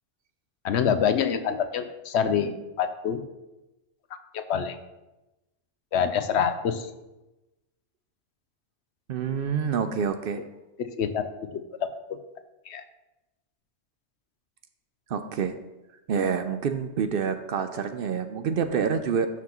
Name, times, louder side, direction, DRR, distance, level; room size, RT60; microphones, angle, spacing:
voice 1, 0.6-3.2 4.3-4.8 5.9-6.9 10.8-11.3 12.1-12.2 12.7-12.8, left 7 dB, 70° left, 10 dB, 0.9 m, -26 dB
voice 2, 9.1-10.4 15.1-15.6 16.1-19.3, right 6 dB, 60° right, 9 dB, 0.6 m, -27 dB
12.0 x 5.9 x 3.0 m, 1.0 s
omnidirectional pair, 1.3 m